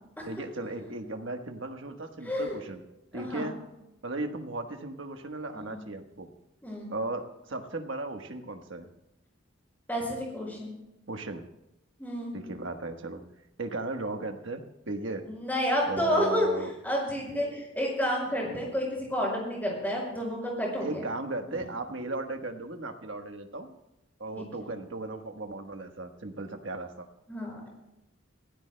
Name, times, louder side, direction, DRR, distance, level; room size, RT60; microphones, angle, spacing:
voice 1, 0.3-2.8 3.1-3.6 4.0-6.3 6.9-8.9 11.1-11.5 12.3-13.2 13.6-15.3 15.9-16.7 20.8-23.7 24.2-27.1, right 2 dB, 65° right, 5 dB, 1.3 m, -36 dB
voice 2, 2.2-2.6 3.1-3.5 5.7-5.8 6.6-6.9 9.9-10.7 12.0-12.4 15.2-21.0 24.3-24.4 27.3-27.7, equal, 10° left, -3 dB, 5.8 m, -30 dB
25.5 x 16.5 x 2.2 m, 0.91 s
head